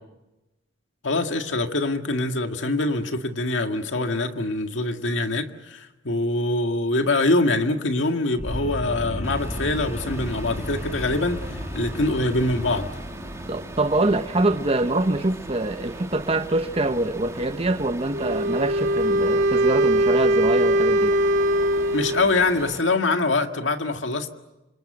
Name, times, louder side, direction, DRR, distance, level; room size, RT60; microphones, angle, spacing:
voice 1, 1.0-12.9 21.9-24.3, left 2 dB, 85° left, 1.9 m, -24 dB
sound 1, 8.4-14.7, equal, 35° left, 4.2 m, -34 dB
sound 2, 9.2-22.8, right 1 dB, 15° right, 2.3 m, -39 dB
voice 2, 13.5-21.2, right 2 dB, 30° right, 1.0 m, -24 dB
Wind instrument woodwind instrument, 18.1-22.4, right 1 dB, 75° right, 2.3 m, -21 dB
28.0 x 26.5 x 7.9 m
head